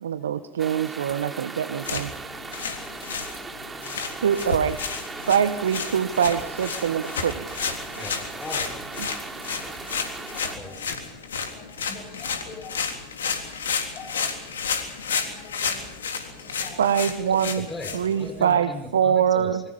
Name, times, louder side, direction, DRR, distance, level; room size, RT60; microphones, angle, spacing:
voice 1, 0.0-2.1 4.2-4.8 5.3-7.3 9.0-9.1 16.8-17.6 17.9-19.6, right 8 dB, 75° right, 12 dB, 1.2 m, -23 dB
sound 1, 0.6-10.6, right 3 dB, 15° right, 3.3 m, -38 dB
sound 2, 1.7-18.5, left 6 dB, 80° left, 3.5 m, -32 dB
voice 2, 2.6-3.0 3.3-3.5 9.8-9.9 10.3-10.8 11.5-12.8 13.9-14.3 15.1-15.9 16.2-17.0, left 5 dB, 40° left, 3 dB, 6.7 m, -45 dB
voice 3, 8.0-8.8 10.5-11.2 15.4-15.5 17.3-19.6, left 2 dB, 15° left, 7 dB, 5.4 m, -38 dB
27.5 x 24.0 x 5.5 m, 0.78 s
figure-of-eight pair, 85°, 0 cm